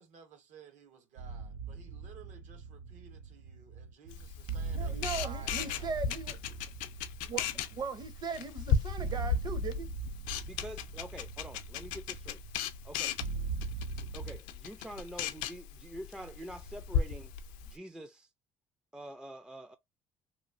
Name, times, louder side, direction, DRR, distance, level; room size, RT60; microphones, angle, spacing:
voice 1, 0.0-5.9, right 6 dB, 70° right, 1.0 m, -54 dB
sound 1, 1.2-14.4, right 4 dB, 85° right, 0.4 m, -41 dB
Camera, 4.1-17.7, left 7 dB, 85° left, 0.4 m, -36 dB
voice 2, 4.7-6.4 7.3-9.9, right 5 dB, 35° right, 0.7 m, -39 dB
voice 3, 10.5-12.4 12.8-13.1 14.0-17.3 17.6-18.3 18.9-19.8, equal, 5° right, 0.3 m, -46 dB
3.0 x 2.3 x 2.4 m
cardioid pair, 95°, 13 cm